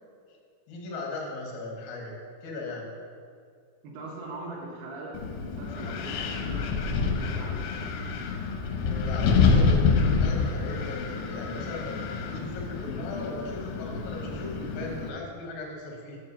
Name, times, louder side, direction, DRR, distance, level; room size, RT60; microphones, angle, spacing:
voice 1, 0.7-2.9 8.8-16.2, left 2 dB, 65° left, -2 dB, 1.9 m, -38 dB
voice 2, 3.8-7.6, right 2 dB, 70° right, -3 dB, 2.5 m, -41 dB
Wind, 5.2-15.1, left 4 dB, 80° left, 2.8 m, -27 dB
8.1 x 4.6 x 7.0 m, 2.2 s
omnidirectional pair, 5.6 m